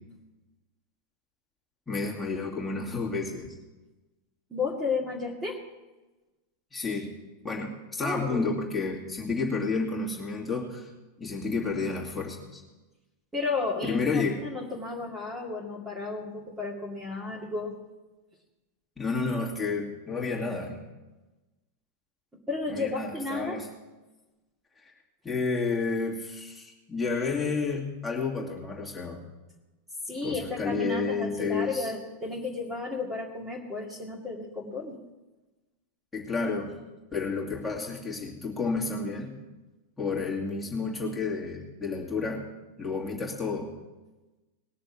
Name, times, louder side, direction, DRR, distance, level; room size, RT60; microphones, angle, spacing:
voice 1, 1.9-3.6 6.7-7.1 7.4-10.9 11.2-12.6 13.8-14.4 19.0-20.8 22.7-23.7 24.8-24.9 25.2-29.2 30.2-31.9 36.1-36.7 37.1-39.3 40.0-42.5 42.8-43.7, left 4 dB, 10° left, -3 dB, 2.4 m, -31 dB
voice 2, 4.5-5.6 8.0-8.5 13.3-17.8 22.5-23.6 30.1-35.0, left 3 dB, 10° right, -3 dB, 2.1 m, -33 dB
19.5 x 6.8 x 6.1 m, 1.1 s
figure-of-eight pair, 90°, 0 cm